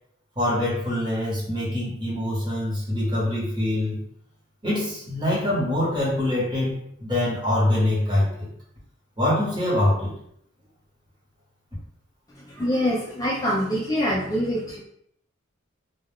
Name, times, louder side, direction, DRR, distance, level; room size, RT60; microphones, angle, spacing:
voice 1, 0.4-4.0 4.6-6.7 7.0-8.5 9.2-10.1, left 1 dB, 25° right, -7 dB, 1.1 m, -24 dB
voice 2, 12.4-14.8, equal, 20° left, -4 dB, 0.3 m, -25 dB
2.3 x 2.2 x 3.4 m, 0.67 s
head